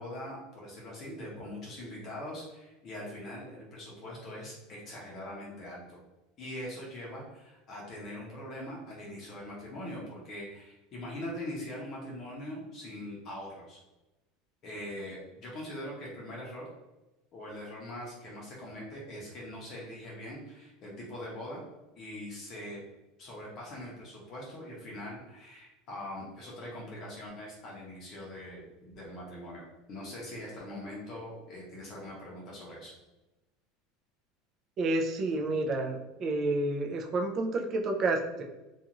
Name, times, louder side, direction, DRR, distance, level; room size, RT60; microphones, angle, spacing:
voice 1, 0.0-6.0 6.4-13.8 14.6-16.7 17.3-21.6 22.0-22.8 23.2-32.9, left 1 dB, 35° left, -4 dB, 0.7 m, -42 dB
voice 2, 34.8-38.4, right 2 dB, 35° right, 1 dB, 0.4 m, -30 dB
2.5 x 2.4 x 2.9 m, 1.0 s
supercardioid pair, 150°, 0 cm